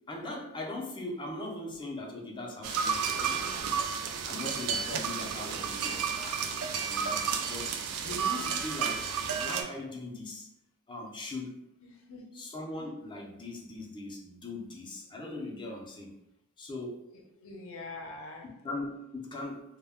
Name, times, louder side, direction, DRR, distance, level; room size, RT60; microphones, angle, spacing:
voice 1, 0.1-3.4 3.7-6.6 6.9-9.0 9.4-10.5 10.9-11.6 12.3-16.1 16.6-17.0 18.4-19.6, left 2 dB, 20° left, 0 dB, 0.4 m, -40 dB
sound 1, 2.6-9.6, right 6 dB, 90° right, 0.3 m, -32 dB
voice 2, 7.8-8.4 11.8-12.2 17.1-18.5, left 2 dB, 70° left, 1 dB, 0.6 m, -45 dB
2.1 x 2.1 x 3.4 m, 0.85 s
head